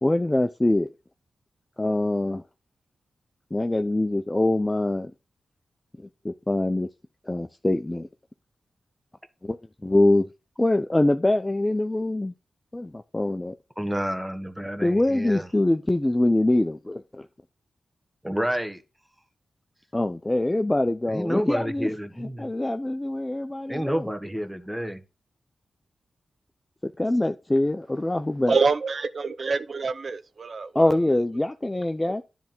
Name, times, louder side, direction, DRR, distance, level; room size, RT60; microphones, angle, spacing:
voice 1, 0.0-0.9 1.8-2.4 3.5-5.1 6.2-6.9 7.3-8.1 9.4-9.6 9.8-10.3 10.6-12.3 12.7-13.5 14.8-17.3 19.9-21.9 22.2-24.1 26.8-28.5 30.7-32.2, left 1 dB, 20° left, 0.6 m, -24 dB
voice 2, 13.8-15.5 18.2-18.8 21.1-22.5 23.7-25.0, equal, 5° right, 1.5 m, -29 dB
voice 3, 28.5-31.2 32.0-32.1, right 4 dB, 55° right, 0.8 m, -27 dB
10.5 x 3.5 x 6.0 m
cardioid pair, 60°, 0 cm